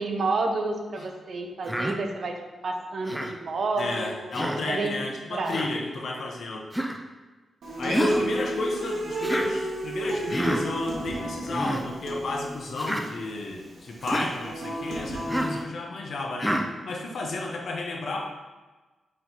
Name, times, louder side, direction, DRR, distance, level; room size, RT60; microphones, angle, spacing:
voice 1, 0.0-2.3 2.6-4.3 4.7-4.9 5.3-5.6 7.8-8.3, right 3 dB, 60° right, 3 dB, 0.9 m, -30 dB
Human voice, 1.7-2.0 3.1-3.3 4.3-4.6 5.5-5.7 6.7-7.0 7.9-8.3 9.2-9.5 10.3-10.6 11.4-11.8 12.8-13.0 14.0-14.3 15.3-15.6 16.4-16.7, equal, ahead, 0.6 m, -28 dB
voice 2, 3.8-6.7 7.8-16.6 16.9-18.2, left 2 dB, 65° left, 0 dB, 1.1 m, -32 dB
Human voice / Acoustic guitar, 7.6-15.6, right 1 dB, 75° right, 1.5 m, -33 dB
6.1 x 4.6 x 4.1 m, 1.2 s
wide cardioid pair, 110°, 0 cm